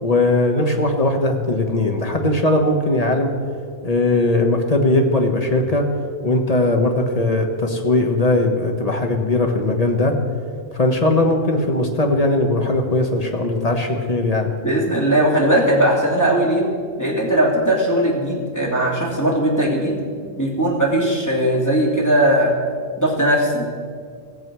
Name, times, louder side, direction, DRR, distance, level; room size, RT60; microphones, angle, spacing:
voice 1, 0.0-3.3 3.8-5.9 6.2-10.1 10.8-14.5, left 2 dB, 30° left, 3 dB, 1.4 m, -19 dB
voice 2, 14.6-16.6 17.0-20.0 20.4-22.5 23.0-23.7, right 1 dB, 10° left, -4 dB, 2.9 m, -18 dB
18.5 x 7.3 x 6.2 m, 2.1 s
omnidirectional pair, 1.4 m